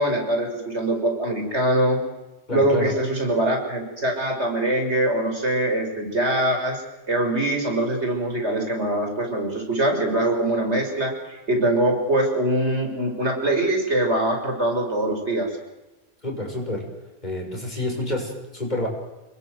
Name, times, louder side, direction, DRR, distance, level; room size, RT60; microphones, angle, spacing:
voice 1, 0.0-2.0 2.5-6.8 7.1-15.5, right 1 dB, 80° right, 3 dB, 6.0 m, -23 dB
voice 2, 2.5-2.9 16.2-16.9 17.2-18.9, left 1 dB, 40° left, 0 dB, 7.0 m, -28 dB
27.5 x 22.0 x 8.0 m, 1.0 s
omnidirectional pair, 1.1 m